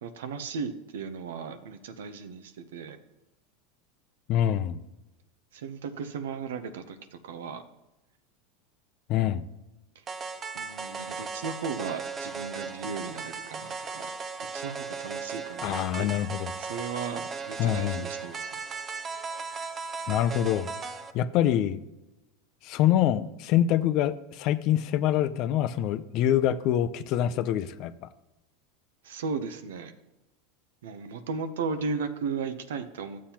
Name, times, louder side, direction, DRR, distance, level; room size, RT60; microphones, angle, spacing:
voice 1, 0.0-3.0 5.5-7.6 10.5-14.1 14.4-18.5 29.0-29.9 30.8-33.2, right 5 dB, 85° right, 9 dB, 0.6 m, -36 dB
voice 2, 4.3-4.8 9.1-9.4 15.6-16.5 17.6-18.0 20.1-20.7 21.1-21.8 22.6-27.9, left 11 dB, 55° left, 13 dB, 0.4 m, -25 dB
sound 1, 10.1-21.1, right 4 dB, 30° right, 0.6 m, -37 dB
11.5 x 7.3 x 2.9 m, 0.99 s
supercardioid pair, 120°, 0 cm